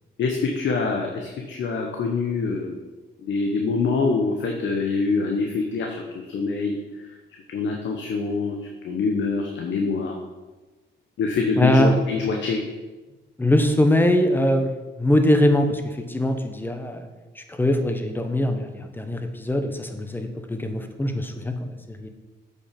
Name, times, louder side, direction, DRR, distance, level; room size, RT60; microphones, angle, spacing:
voice 1, 0.2-2.8 3.2-6.8 7.5-8.6 8.8-10.2 11.2-12.6, left 4 dB, 70° left, 2 dB, 1.1 m, -25 dB
voice 2, 11.6-12.0 13.4-14.7 15.0-17.0 17.3-21.5 21.9-22.1, left 1 dB, 10° left, 6 dB, 1.0 m, -22 dB
8.1 x 5.6 x 5.2 m, 1.2 s
cardioid pair, 90°, 20 cm